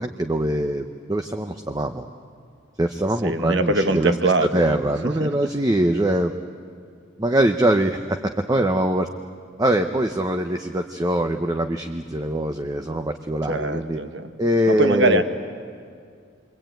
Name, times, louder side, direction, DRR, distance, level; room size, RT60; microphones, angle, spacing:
voice 1, 0.0-2.1 2.8-4.1 4.4-6.3 7.2-9.1 9.6-14.0 14.4-15.2, right 1 dB, 20° right, 5 dB, 0.7 m, -23 dB
voice 2, 3.2-4.8 5.2-5.3 13.4-14.3 14.7-15.2, right 2 dB, 65° right, 8 dB, 1.4 m, -22 dB
28.0 x 23.0 x 9.1 m, 2.2 s
head